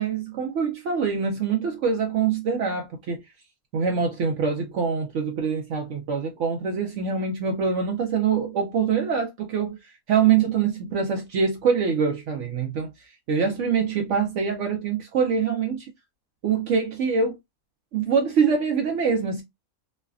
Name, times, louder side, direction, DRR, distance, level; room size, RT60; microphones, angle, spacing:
voice 1, 0.0-3.2 3.7-12.9 13.3-15.9 16.4-17.4 17.9-19.4, right 6 dB, 65° right, 0.8 m, -24 dB
3.1 x 2.1 x 2.3 m
omnidirectional pair, 1.5 m